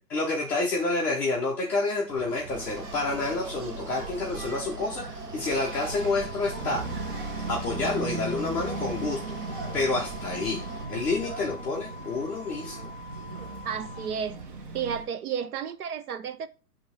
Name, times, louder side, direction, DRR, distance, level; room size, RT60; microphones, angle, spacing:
voice 1, 0.1-6.8 7.5-9.2 9.7-10.6 10.9-12.8, left 3 dB, 5° left, 0.6 m, -28 dB
Engine, 2.1-15.1, right 3 dB, 35° right, 0.9 m, -38 dB
Mechanical fan, 2.5-10.9, right 3 dB, 90° right, 1.8 m, -41 dB
sound 1, 5.5-14.1, left 6 dB, 55° left, 0.7 m, -46 dB
voice 2, 13.6-14.4 14.7-16.5, right 7 dB, 70° right, 0.9 m, -32 dB
10.5 x 3.5 x 3.3 m
hypercardioid pair, 165°, 46 cm